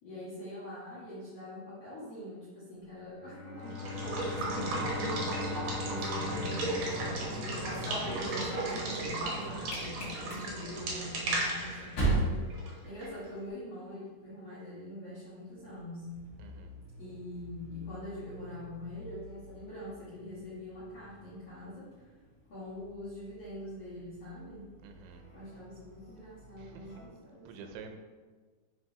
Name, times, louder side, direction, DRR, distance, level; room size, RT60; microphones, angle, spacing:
voice 1, 0.0-5.2 5.8-16.1 17.0-22.1 22.5-24.6 25.3-27.8, left 1 dB, 55° left, -10 dB, 1.8 m, -44 dB
Bowed string instrument, 3.1-8.0, left 5 dB, 80° left, 1.5 m, -41 dB
Water / Water tap faucet / Liquid, 3.6-13.3, right 2 dB, 70° right, 1.7 m, -35 dB
voice 2, 5.9-6.3 16.4-16.7 24.8-25.2 26.6-26.7 27.5-28.0, right 5 dB, 85° right, 5 dB, 2.8 m, -47 dB
sound 1, 7.3-13.5 13.8-14.3 15.4-27.1, right 2 dB, 40° left, 2.3 m, -41 dB
8.1 x 5.1 x 2.9 m, 1.4 s
omnidirectional pair, 4.9 m